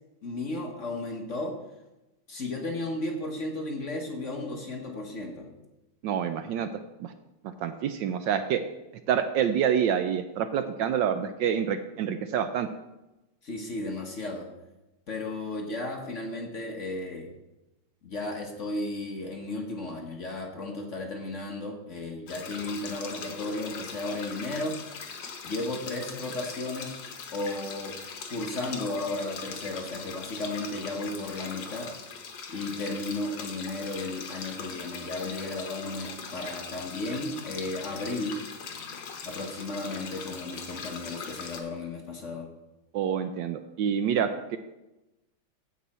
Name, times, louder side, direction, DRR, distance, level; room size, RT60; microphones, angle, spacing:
voice 1, 0.2-1.6 2.3-5.5 13.4-14.5 15.1-17.3 18.0-24.8 25.4-27.0 27.3-28.0 28.3-31.9 32.5-38.4 39.2-42.5, left 2 dB, 45° left, 1 dB, 1.3 m, -34 dB
voice 2, 6.0-6.7 7.0-7.1 7.6-8.6 9.1-12.7 42.9-44.6, right 8 dB, 75° right, 9 dB, 1.2 m, -27 dB
sound 1, 22.3-41.6, left 5 dB, 65° left, 1.7 m, -41 dB
15.0 x 5.5 x 4.3 m, 0.99 s
omnidirectional pair, 2.2 m